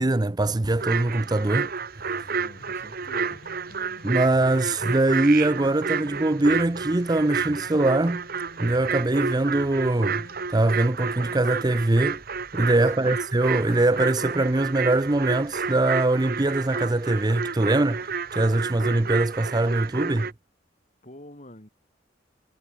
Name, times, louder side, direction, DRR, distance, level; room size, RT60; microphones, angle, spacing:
voice 1, 0.0-1.7 4.0-8.3 8.6-10.2 10.5-12.2 12.5-20.3, right 2 dB, 20° right, 0.6 m, -22 dB
sound 1, 0.8-20.3, right 5 dB, 55° right, 1.5 m, -31 dB
sound 2, 2.1-10.8, left 1 dB, 60° left, 2.9 m, -49 dB
voice 2, 2.3-3.4 12.8-13.2 21.0-21.7, left 1 dB, 40° left, 6.4 m, -46 dB
head